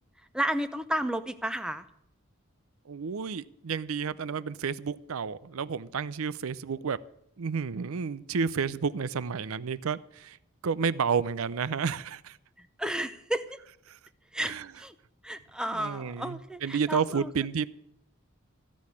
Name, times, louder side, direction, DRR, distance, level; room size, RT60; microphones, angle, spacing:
voice 1, 0.3-1.9 12.6-13.5 14.3-14.9 15.2-17.3, right 1 dB, 5° right, 0.6 m, -32 dB
voice 2, 2.9-7.0 7.4-10.4 10.6-12.4 13.9-14.0 14.4-14.7 15.7-17.7, right 6 dB, 90° right, 0.5 m, -31 dB
15.0 x 6.3 x 9.8 m
head